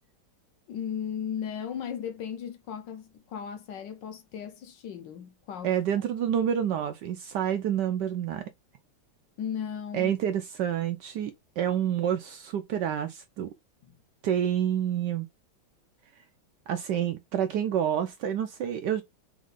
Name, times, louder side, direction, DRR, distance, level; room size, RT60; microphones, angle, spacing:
voice 1, 0.7-5.8 9.4-10.1 13.8-14.0, left 8 dB, 70° left, 1.2 m, -36 dB
voice 2, 5.6-8.4 9.9-13.5 14.2-15.3 16.7-19.0, right 9 dB, 75° right, 1.0 m, -28 dB
3.7 x 3.1 x 3.8 m
omnidirectional pair, 2.2 m